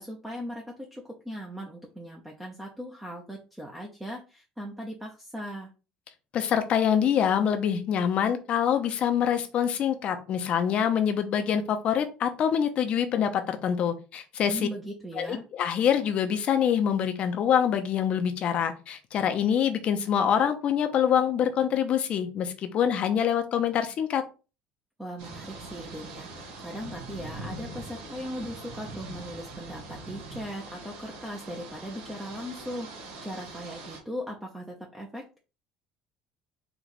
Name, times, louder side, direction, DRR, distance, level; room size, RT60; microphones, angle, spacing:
voice 1, 0.0-5.7 14.5-15.4 25.0-35.4, equal, 5° right, -1 dB, 0.9 m, -39 dB
voice 2, 6.3-14.7 15.2-24.2, left 8 dB, 45° left, 7 dB, 0.9 m, -25 dB
sound 1, 25.2-34.0, right 2 dB, 75° right, 1.9 m, -42 dB
4.6 x 2.5 x 4.1 m, 0.32 s
cardioid pair, 125°, 3 cm